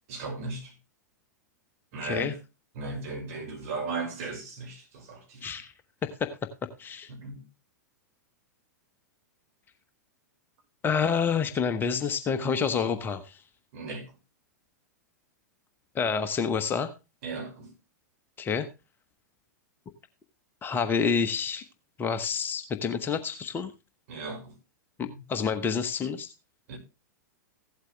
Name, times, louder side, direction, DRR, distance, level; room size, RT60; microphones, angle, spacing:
voice 1, 0.1-0.7 1.9-2.3 2.7-5.6 7.1-7.5 13.7-14.1 17.2-17.7 24.1-24.6 26.7-26.8, right 3 dB, 50° right, 5.6 m, -36 dB
voice 2, 2.0-2.3 5.4-5.7 6.0-6.3 6.6-7.1 10.8-13.4 15.9-16.9 18.4-18.7 20.6-21.6 22.0-23.7 25.0-26.3, left 6 dB, 20° left, 1.1 m, -28 dB
16.0 x 8.1 x 3.3 m
figure-of-eight pair, 100°, 10 cm